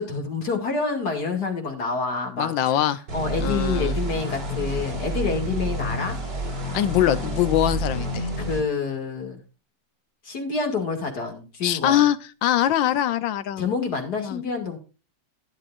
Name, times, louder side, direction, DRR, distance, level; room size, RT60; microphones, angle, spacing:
voice 1, 0.0-6.2 8.4-9.4 10.2-12.0 13.6-14.8, left 4 dB, 55° left, 2 dB, 2.9 m, -28 dB
voice 2, 2.4-3.0 3.4-4.0 6.7-8.3 11.6-12.2 12.4-13.7 14.2-14.4, left 12 dB, 80° left, 14 dB, 1.5 m, -22 dB
sound 1, 3.1-8.6, right 1 dB, 60° right, 4.1 m, -29 dB
12.5 x 10.0 x 2.5 m, 0.32 s
omnidirectional pair, 2.0 m